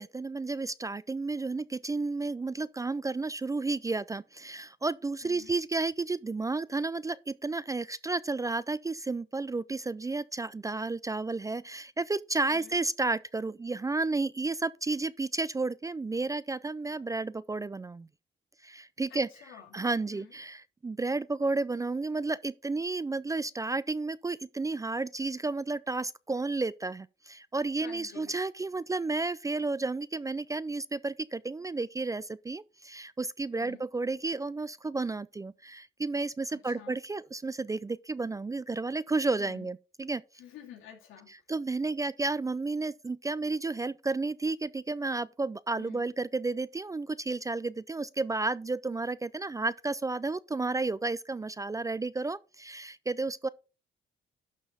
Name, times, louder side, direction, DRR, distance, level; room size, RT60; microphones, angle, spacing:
voice 1, 0.0-18.1 18.6-19.3 19.7-40.2 41.3-53.5, right 3 dB, 15° right, 0.3 m, -32 dB
voice 2, 5.2-5.5 12.5-12.7 19.1-19.7 20.1-20.3 27.8-28.3 33.5-33.8 36.5-36.9 39.4-39.7 40.4-41.3 45.7-46.0, left 9 dB, 85° left, 2.5 m, -50 dB
12.0 x 4.5 x 4.0 m
cardioid pair, 90°, 20 cm